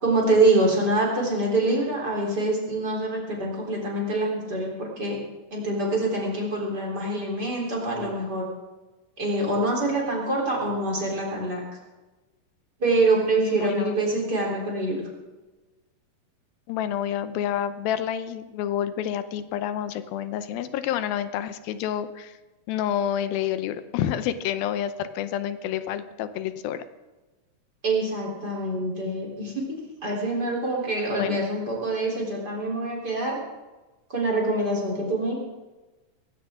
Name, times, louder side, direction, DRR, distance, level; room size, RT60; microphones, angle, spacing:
voice 1, 0.0-5.2 5.5-8.4 9.2-11.6 12.8-15.0 27.8-29.8 30.0-33.4 34.1-35.4, right 2 dB, 25° right, -2 dB, 4.0 m, -25 dB
voice 2, 13.4-14.0 16.7-22.3 22.7-26.8 31.2-31.4, left 10 dB, 85° left, 12 dB, 2.6 m, -28 dB
19.5 x 16.0 x 3.7 m, 1.2 s
omnidirectional pair, 4.1 m